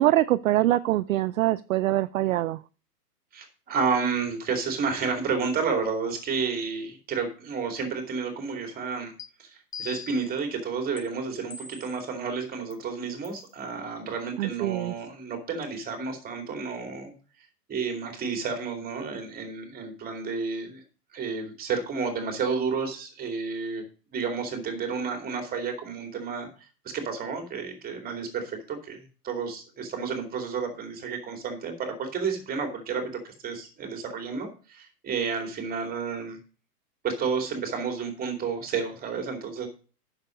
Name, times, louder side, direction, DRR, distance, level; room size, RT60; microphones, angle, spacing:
voice 1, 0.0-2.6 14.4-14.9, right 15 dB, 55° right, 14 dB, 0.5 m, -24 dB
voice 2, 3.3-9.1 9.4-17.1 17.7-20.8 21.1-23.8 24.1-36.4 37.0-39.7, right 5 dB, 20° right, 5 dB, 2.7 m, -31 dB
sound 1, 9.2-9.3 9.7-10.3 11.0-11.1 11.5-12.0 12.7-12.8 13.2-13.5, left 5 dB, 5° left, 0.6 m, -41 dB
9.5 x 6.6 x 5.1 m, 0.37 s
hypercardioid pair, 125°, 48 cm